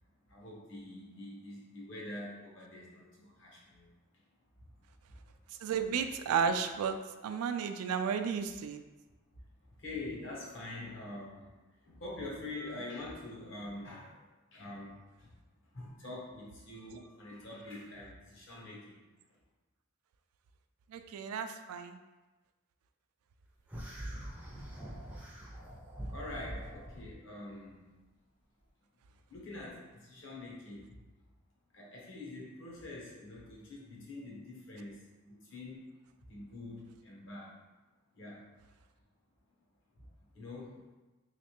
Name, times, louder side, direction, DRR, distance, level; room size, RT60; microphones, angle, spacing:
voice 1, 0.3-3.9 5.1-5.2 9.3-9.4 9.8-11.5 11.8-14.2 14.5-15.3 15.7-19.0 19.3-19.4 26.1-27.9 29.3-31.0 31.7-35.8 36.3-37.6 38.1-38.5 40.0-40.1 40.3-40.9, left 2 dB, 60° left, -3 dB, 0.9 m, -45 dB
voice 2, 5.6-8.8 20.9-22.0, right 6 dB, 90° right, 9 dB, 0.3 m, -33 dB
sound 1, 23.7-27.1, right 1 dB, 5° right, 0.4 m, -44 dB
3.2 x 3.1 x 2.9 m, 1.1 s
head